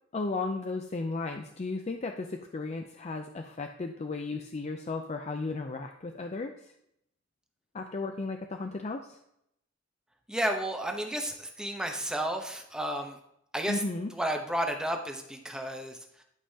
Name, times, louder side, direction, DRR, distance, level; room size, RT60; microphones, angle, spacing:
voice 1, 0.1-6.7 7.7-9.2 13.7-14.1, left 3 dB, 35° left, 5 dB, 0.4 m, -35 dB
voice 2, 10.3-13.2 13.5-13.8 14.1-16.2, right 1 dB, 5° right, 3 dB, 0.8 m, -32 dB
11.5 x 5.4 x 2.8 m, 0.76 s
head